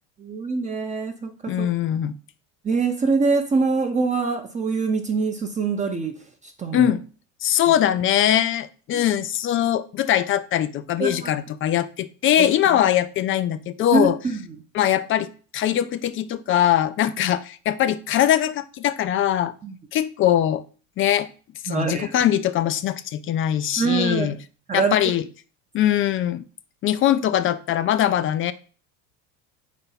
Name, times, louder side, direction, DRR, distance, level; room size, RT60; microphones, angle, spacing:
voice 1, 0.2-1.7 2.6-6.1 6.6-6.9 8.9-9.0 11.0-11.3 12.4-12.5 13.9-14.4 19.6-19.7 21.7-22.1 23.8-24.3 24.7-24.9, right 4 dB, 20° right, 3 dB, 0.6 m, -24 dB
voice 2, 1.5-2.2 6.7-7.0 7.4-14.2 14.7-19.5 19.9-20.6 21.0-21.3 21.6-24.3 24.7-25.2 25.7-26.4 26.8-28.5, left 11 dB, 35° left, 15 dB, 0.4 m, -21 dB
4.4 x 4.2 x 5.6 m, 0.39 s
supercardioid pair, 110°, 40 cm